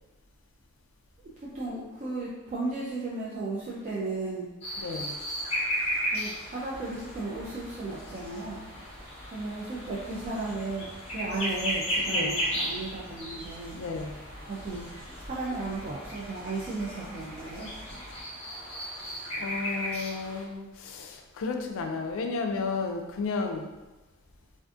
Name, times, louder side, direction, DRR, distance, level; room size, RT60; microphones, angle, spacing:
voice 1, 1.2-4.5 6.1-8.7 9.3-13.8 14.5-14.9 15.2-17.7, right 3 dB, 35° right, -7 dB, 0.3 m, -35 dB
sound 1, 4.6-20.4, equal, 30° left, 0.6 m, -35 dB
voice 2, 4.8-5.2 12.0-12.3 13.7-14.2 19.4-23.7, left 4 dB, 65° left, 3 dB, 0.3 m, -33 dB
sound 2, 6.7-18.2, equal, 75° right, 1.1 m, -48 dB
2.4 x 2.4 x 2.4 m, 1.1 s
head